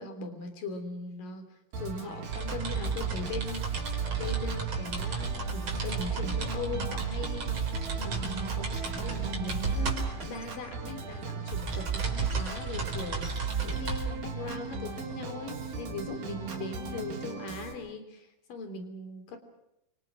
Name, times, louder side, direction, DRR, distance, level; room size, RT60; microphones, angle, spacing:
voice 1, 0.0-1.5 1.8-19.4, left 3 dB, 75° left, 8 dB, 5.1 m, -40 dB
Organ, 1.7-17.7, right 4 dB, 80° right, 5.1 m, -39 dB
sound 1, 2.3-16.0, right 5 dB, 50° right, 5.3 m, -33 dB
Shatter, 8.1-8.6 10.2-10.7 12.3-14.0, right 2 dB, 30° right, 6.2 m, -50 dB
28.5 x 25.0 x 6.2 m, 0.81 s
omnidirectional pair, 3.9 m